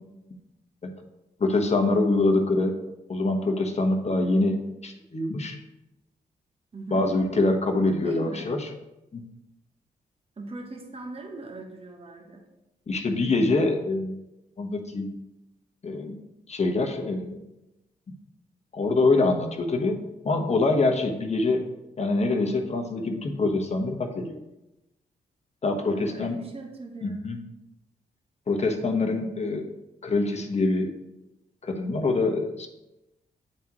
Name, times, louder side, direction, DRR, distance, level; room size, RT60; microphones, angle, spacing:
voice 1, 1.4-2.8 3.1-5.6 6.9-8.7 9.1-9.2 12.9-14.1 14.6-15.1 15.8-16.2 16.5-17.4 18.7-21.6 22.0-24.4 25.6-26.4 27.0-27.4 28.5-29.7 30.0-30.9 31.6-32.7, left 2 dB, 40° left, 3 dB, 1.1 m, -25 dB
voice 2, 6.7-7.0 8.0-8.6 10.4-12.4 25.9-27.4, right 2 dB, 35° right, 2 dB, 1.1 m, -40 dB
9.0 x 3.7 x 3.0 m, 0.95 s
cardioid pair, 55°, 17 cm